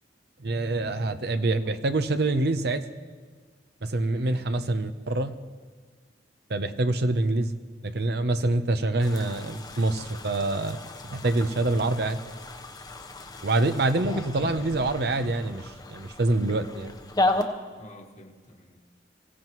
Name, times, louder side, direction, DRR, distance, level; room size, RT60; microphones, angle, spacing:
voice 1, 0.4-2.9 3.8-5.4 6.5-7.5 7.8-10.8 11.1-12.2 13.4-16.9, right 2 dB, 65° right, 10 dB, 0.8 m, -26 dB
voice 2, 4.0-4.7 17.8-18.8, left 1 dB, 40° left, 3 dB, 1.3 m, -50 dB
sound 1, 9.0-17.4, left 2 dB, 25° left, 0.9 m, -34 dB
24.5 x 16.0 x 3.1 m, 1.5 s
head